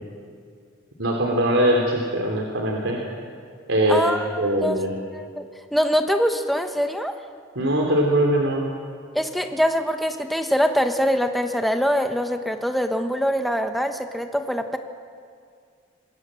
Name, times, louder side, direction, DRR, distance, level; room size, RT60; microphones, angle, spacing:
voice 1, 1.0-3.0 3.7-4.1 4.4-4.9 7.5-8.7, right 1 dB, 85° right, 0 dB, 3.3 m, -21 dB
voice 2, 3.9-4.8 5.1-5.5 5.7-7.2 9.1-14.8, equal, ahead, 5 dB, 1.1 m, -23 dB
26.0 x 22.0 x 7.7 m, 2.2 s
head